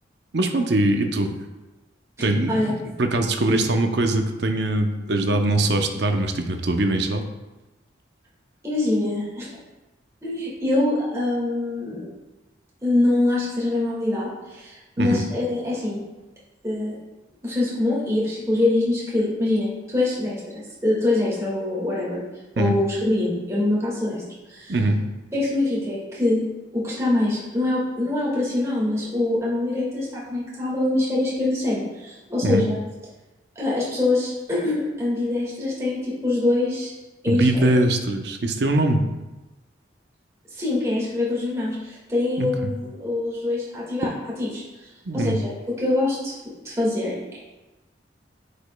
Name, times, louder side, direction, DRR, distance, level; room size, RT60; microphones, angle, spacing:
voice 1, 0.3-1.3 2.2-2.5 3.0-7.2 15.0-15.2 22.6-22.7 24.7-25.0 32.4-32.6 37.3-39.0 42.4-42.7 45.1-45.4, right 2 dB, 65° right, 5 dB, 0.7 m, -22 dB
voice 2, 2.2-2.7 3.5-3.6 8.6-9.5 10.2-12.1 12.8-16.0 16.6-17.0 17.4-22.2 22.6-24.2 24.5-24.8 25.3-26.4 26.7-32.8 33.6-36.9 37.2-37.8 40.5-44.1 44.4-44.6 45.1-46.4 46.6-47.4, left 2 dB, 15° right, -6 dB, 1.8 m, -24 dB
10.5 x 5.2 x 2.2 m, 1.1 s
head